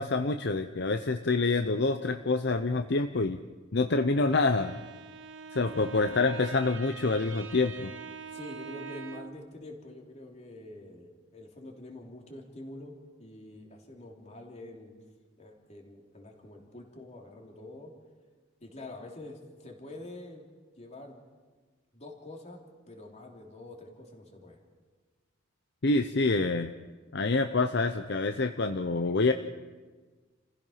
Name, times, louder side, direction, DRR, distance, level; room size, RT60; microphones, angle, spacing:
voice 1, 0.0-3.4 3.7-4.7 5.5-7.9 25.8-26.7 27.1-29.3, left 3 dB, 60° left, 8 dB, 0.8 m, -27 dB
Bowed string instrument, 4.1-9.5, right 5 dB, 80° right, 1.2 m, -44 dB
voice 2, 8.3-14.9 15.4-17.9 18.6-20.4 20.8-21.2 21.9-22.6 22.9-24.6, left 2 dB, 35° left, 1 dB, 3.3 m, -46 dB
29.0 x 15.5 x 5.7 m, 1.4 s
head